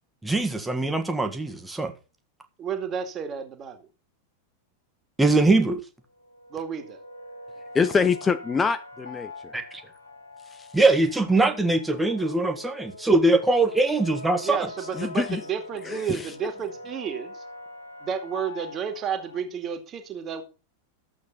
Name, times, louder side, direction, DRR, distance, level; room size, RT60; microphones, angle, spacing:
voice 1, 0.2-1.9 5.2-5.8 9.5-9.8 10.7-14.7, right 2 dB, 5° right, 1.8 m, -22 dB
voice 2, 2.6-3.9 6.5-7.0 14.4-17.4 18.0-20.4, right 7 dB, 30° right, 2.3 m, -31 dB
sound 1, 6.1-19.4, left 2 dB, 80° left, 2.2 m, -43 dB
voice 3, 7.7-9.3 10.5-10.7 15.0-15.4 15.8-16.3, left 5 dB, 15° left, 0.7 m, -25 dB
13.0 x 8.2 x 4.2 m
figure-of-eight pair, 90°, 0 cm